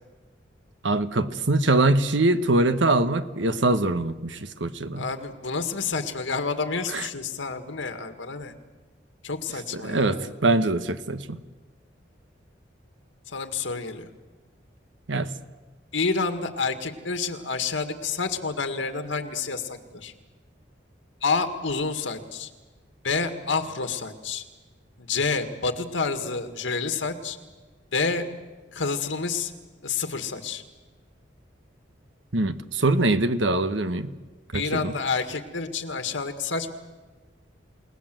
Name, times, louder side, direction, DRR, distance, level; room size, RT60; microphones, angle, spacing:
voice 1, 0.8-5.1 6.9-7.0 9.7-11.4 15.1-15.3 32.3-34.1 34.5-34.9, right 2 dB, 80° right, 11 dB, 1.2 m, -23 dB
voice 2, 4.9-8.5 9.2-10.3 13.3-14.1 15.9-20.1 21.2-22.5 23.0-24.4 25.0-27.4 27.9-28.3 28.7-29.5 29.8-30.6 34.5-36.7, left 4 dB, 90° left, 7 dB, 1.9 m, -29 dB
29.5 x 18.5 x 7.7 m, 1.3 s
head